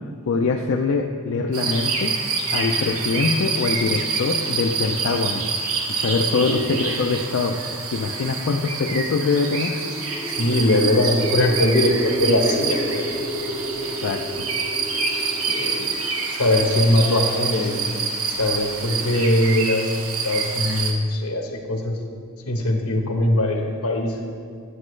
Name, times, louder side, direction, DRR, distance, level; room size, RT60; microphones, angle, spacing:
voice 1, 0.3-2.1 2.5-5.4 5.9-7.6 7.9-9.7 13.9-14.4, left 4 dB, 60° left, 3 dB, 0.4 m, -23 dB
sound 1, 1.5-20.9, right 4 dB, 70° right, 1.0 m, -27 dB
voice 2, 6.3-6.6 10.3-13.0 15.5-16.0 16.4-17.9 18.3-22.0 22.5-24.2, left 1 dB, 75° left, 2 dB, 1.1 m, -21 dB
sound 2, 9.4-17.5, equal, 20° right, 0.7 m, -32 dB
9.6 x 8.4 x 3.2 m, 2.2 s
head